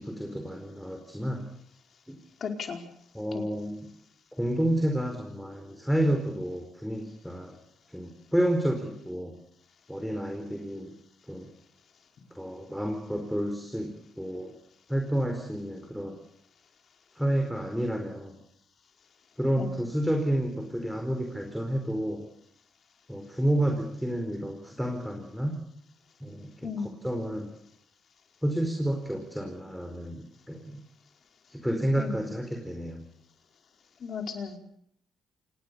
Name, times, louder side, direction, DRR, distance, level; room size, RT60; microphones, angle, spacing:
voice 1, 0.0-1.5 2.1-2.2 3.1-3.9 4.3-7.6 7.9-9.3 9.9-10.9 11.3-11.5 12.3-14.5 14.9-16.2 17.2-18.4 19.4-22.2 23.1-25.6 26.2-26.7 27.0-27.5 28.4-30.8 31.5-33.0, right 1 dB, ahead, 3 dB, 4.6 m, -30 dB
voice 2, 2.4-2.8 3.3-3.4 19.6-19.8 26.6-26.9 32.0-32.2 34.0-34.6, left 5 dB, 55° left, 4 dB, 4.8 m, -35 dB
27.5 x 20.0 x 7.0 m, 0.70 s
cardioid pair, 90°, 0 cm